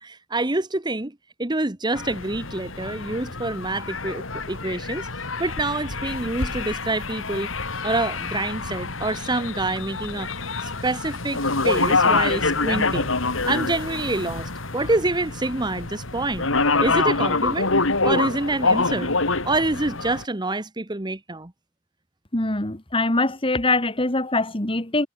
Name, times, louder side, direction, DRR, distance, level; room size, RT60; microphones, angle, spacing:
voice 1, 0.0-5.1 5.4-7.5 7.8-10.3 10.6-16.5 16.8-17.7 18.0-19.1 19.4-21.5, right 2 dB, 20° right, 1.2 m, -27 dB
sound 1, 1.9-20.2, left 3 dB, 75° left, 3.3 m, -26 dB
voice 2, 22.3-25.1, left 2 dB, 25° left, 2.3 m, -23 dB
head